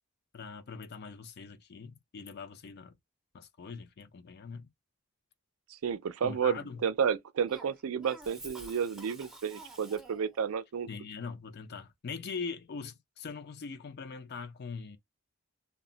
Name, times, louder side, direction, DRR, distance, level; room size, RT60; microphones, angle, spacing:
voice 1, 0.3-2.9 3.3-4.7 6.2-6.8 10.9-15.0, left 5 dB, 50° left, 0.4 m, -42 dB
voice 2, 5.7-10.9, right 7 dB, 75° right, 0.4 m, -31 dB
Cough, 7.5-10.4, right 1 dB, ahead, 0.5 m, -49 dB
2.1 x 2.1 x 3.7 m
head